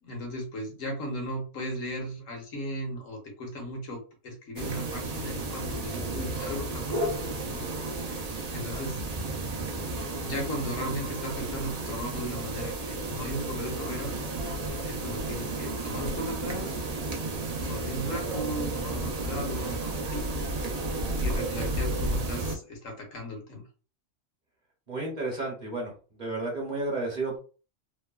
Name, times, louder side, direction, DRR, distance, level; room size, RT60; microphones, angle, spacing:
voice 1, 0.0-7.7 8.5-9.0 10.2-14.2 14.8-16.8 17.6-20.5 21.2-23.6, equal, 80° left, 1 dB, 1.3 m, -36 dB
sound 1, 4.6-22.6, right 2 dB, 70° right, 0.3 m, -32 dB
voice 2, 24.9-25.9 26.2-27.4, right 2 dB, 40° right, -2 dB, 0.8 m, -32 dB
3.0 x 2.1 x 2.3 m, 0.36 s
omnidirectional pair, 1.3 m